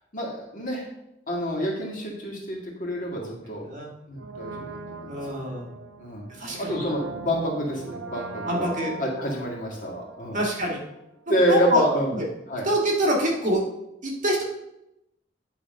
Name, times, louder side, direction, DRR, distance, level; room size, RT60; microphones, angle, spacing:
voice 1, 0.1-0.9 1.3-3.6 4.1-5.4 6.0-6.3 6.6-8.7 9.0-10.4 11.3-12.1 12.5-12.7, equal, 45° left, -1 dB, 1.9 m, -28 dB
voice 2, 3.6-3.9 5.1-5.7 6.4-6.8 8.4-9.0 10.3-10.8 11.3-11.8 12.1-12.3 12.6-13.6 14.0-14.4, equal, 45° right, -1 dB, 1.7 m, -25 dB
Brass instrument, 4.1-11.0 11.2-11.3, right 3 dB, 70° right, 0.8 m, -39 dB
9.3 x 3.5 x 5.3 m, 0.87 s
head